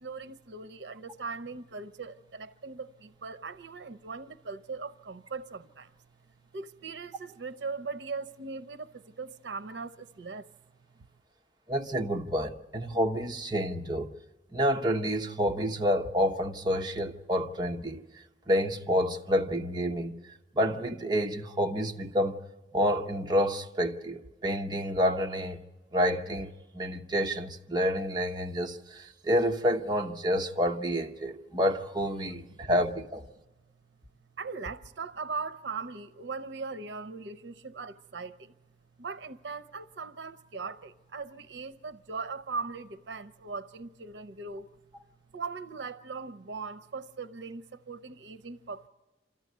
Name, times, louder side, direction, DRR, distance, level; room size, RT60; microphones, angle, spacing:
voice 1, 0.0-5.9 6.5-10.5 34.4-38.5 39.0-44.7 45.3-48.9, right 4 dB, 80° right, 0.7 m, -39 dB
voice 2, 11.7-14.1 14.5-18.0 18.5-20.2 20.6-22.3 22.7-25.6 25.9-33.2, equal, 25° right, 1.0 m, -28 dB
27.0 x 13.5 x 9.3 m
head